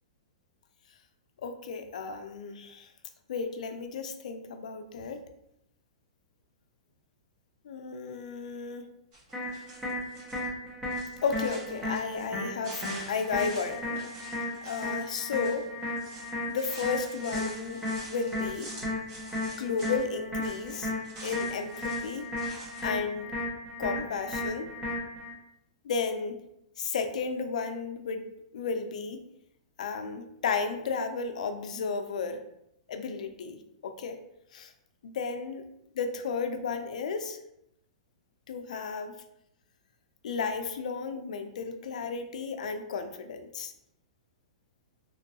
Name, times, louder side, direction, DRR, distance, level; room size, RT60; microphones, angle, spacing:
voice 1, 1.4-2.9 3.3-5.2 7.6-8.9 11.2-14.1 14.6-15.7 16.5-18.7 19.6-20.9 21.2-22.3 22.8-23.3 23.8-24.7 25.8-26.4 26.8-29.2 29.8-32.4 32.9-34.2 34.5-34.7 35.0-35.6 35.9-37.4 38.5-39.1 40.2-43.7, left 5 dB, 75° left, 8 dB, 0.4 m, -33 dB
sound 1, 9.1-10.5 10.8-12.3 12.6-20.1 20.4-22.9, right 1 dB, 35° right, 1.5 m, -47 dB
sound 2, 9.3-25.3, left 2 dB, 10° right, 0.9 m, -35 dB
3.0 x 2.6 x 2.7 m, 0.80 s
hypercardioid pair, 155°, 4 cm